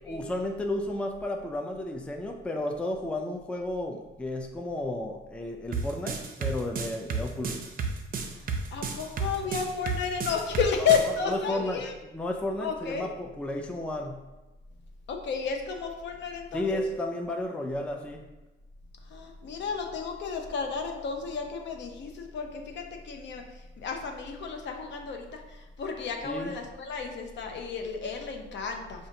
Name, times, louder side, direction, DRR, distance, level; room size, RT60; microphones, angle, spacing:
voice 1, 0.0-7.6 10.8-10.9 11.3-11.8 12.1-14.2 16.5-18.2 26.2-26.5, left 1 dB, 5° left, 3 dB, 0.4 m, -33 dB
sound 1, 5.7-11.1, right 5 dB, 45° right, 0.5 m, -31 dB
voice 2, 8.4-11.9 12.6-13.1 15.1-16.8 19.0-29.1, left 6 dB, 65° left, 3 dB, 0.6 m, -32 dB
5.0 x 2.4 x 2.6 m, 1.1 s
cardioid pair, 90°, 20 cm